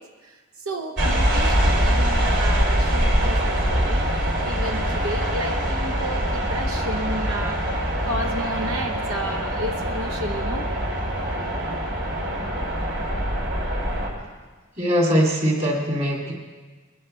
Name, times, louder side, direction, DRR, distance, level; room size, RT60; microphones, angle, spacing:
voice 1, 0.0-4.1 4.4-7.7 8.0-10.7 11.4-11.8, right 1 dB, 90° right, 4 dB, 0.9 m, -32 dB
sound 1, 1.0-14.1, equal, 60° right, 3.1 m, -23 dB
voice 2, 14.8-16.3, equal, 30° right, -1 dB, 2.5 m, -21 dB
20.0 x 10.0 x 4.4 m, 1.3 s
head